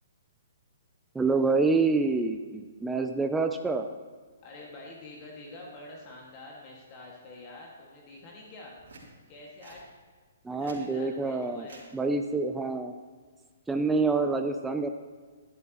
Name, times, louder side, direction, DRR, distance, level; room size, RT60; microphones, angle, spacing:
voice 1, 1.1-3.9 10.4-11.7 11.9-12.9 13.7-14.9, right 3 dB, 5° right, 5 dB, 0.5 m, -27 dB
voice 2, 4.4-8.8 9.3-9.9 10.6-11.9, left 2 dB, 35° left, -2 dB, 1.9 m, -47 dB
sound 1, 8.8-9.1 9.6-9.8 10.4-10.8 11.6-11.9 13.2-13.4, right 3 dB, 70° right, 3.0 m, -51 dB
12.5 x 11.0 x 3.0 m, 1.5 s
hypercardioid pair, 135°, 0 cm